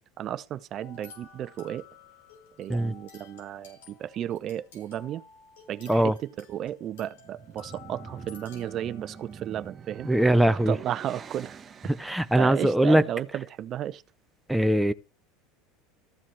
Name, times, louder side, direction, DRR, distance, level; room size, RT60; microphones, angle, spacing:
voice 1, 0.2-1.9 2.6-5.2 5.7-10.1 10.5-11.6 12.0-14.0, right 11 dB, 45° right, 0.6 m, -34 dB
sound 1, 0.8-9.7, left 6 dB, 90° left, 4.9 m, -52 dB
sound 2, 7.3-12.6, right 6 dB, 30° right, 1.1 m, -45 dB
voice 2, 10.1-10.7 12.0-13.0 14.5-14.9, right 1 dB, ahead, 0.6 m, -21 dB
14.0 x 7.3 x 3.3 m
supercardioid pair, 105°, 0 cm